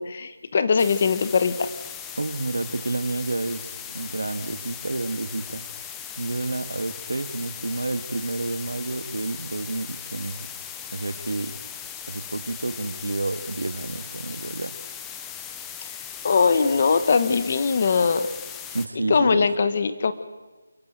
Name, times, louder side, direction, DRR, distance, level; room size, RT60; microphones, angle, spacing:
voice 1, 0.0-1.7 16.2-18.3 19.1-20.1, left 5 dB, 25° left, 12 dB, 1.1 m, -21 dB
sound 1, 0.8-18.9, left 8 dB, 5° left, 0.6 m, -38 dB
voice 2, 2.2-5.7 6.2-10.5 10.9-11.6 12.1-14.8 18.7-19.5, right 2 dB, 80° right, 11 dB, 1.8 m, -30 dB
29.0 x 10.5 x 9.3 m, 1.2 s
figure-of-eight pair, 180°, 0 cm